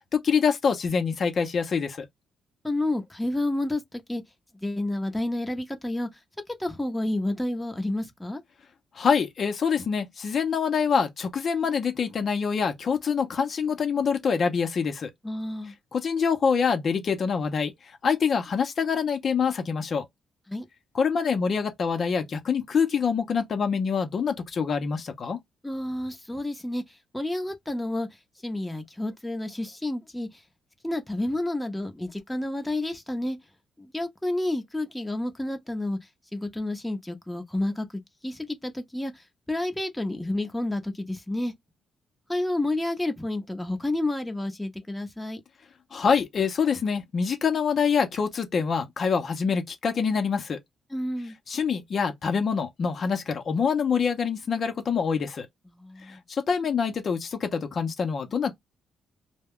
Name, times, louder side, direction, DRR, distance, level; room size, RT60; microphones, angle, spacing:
voice 1, 0.1-2.1 8.9-15.1 15.9-20.1 20.9-25.4 45.9-50.6 51.5-55.5 56.1-58.5, left 6 dB, 50° left, 0.7 m, -25 dB
voice 2, 2.6-4.2 4.6-6.1 6.6-8.4 15.2-15.7 20.5-20.6 25.6-26.8 27.1-28.1 28.4-30.4 30.8-33.4 33.8-36.0 36.3-41.5 42.3-45.4 50.9-51.4 55.7-56.2, left 1 dB, 5° left, 0.8 m, -30 dB
2.2 x 2.1 x 3.5 m
cardioid pair, 90°, 0 cm